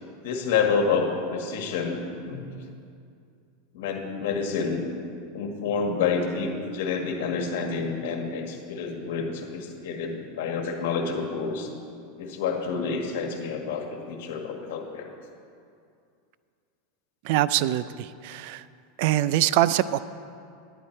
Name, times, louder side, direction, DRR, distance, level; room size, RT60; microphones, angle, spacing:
voice 1, 0.2-2.6 3.7-4.8 5.3-11.7 12.2-15.1, left 5 dB, 70° left, 3 dB, 1.5 m, -28 dB
voice 2, 17.2-18.6 19.0-20.0, right 13 dB, 60° right, 16 dB, 0.3 m, -23 dB
10.5 x 10.0 x 4.4 m, 2.4 s
supercardioid pair, 140°, 0 cm